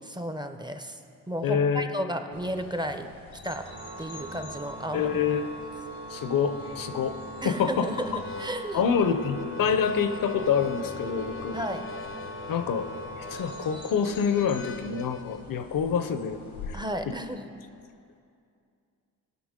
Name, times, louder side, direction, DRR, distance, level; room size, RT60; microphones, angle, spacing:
voice 1, 0.0-1.0 1.3-3.1 3.4-3.7 4.0-5.2 7.4-9.0 11.5-11.9 16.7-17.6, equal, 10° right, 8 dB, 0.6 m, -33 dB
voice 2, 1.4-1.9 4.9-5.5 6.1-7.2 7.4-7.9 8.7-11.6 12.5-12.9 13.2-16.4 16.7-16.8 17.1-17.2, left 6 dB, 60° left, 10 dB, 0.7 m, -26 dB
sound 1, 2.3-16.7, left 4 dB, 85° left, 1.3 m, -48 dB
Organ, 3.6-14.5, right 2 dB, 60° right, 1.6 m, -42 dB
Harmonica, 8.1-15.4, left 6 dB, 35° left, 0.4 m, -42 dB
15.0 x 5.9 x 3.7 m, 2.4 s
cardioid pair, 60°, 39 cm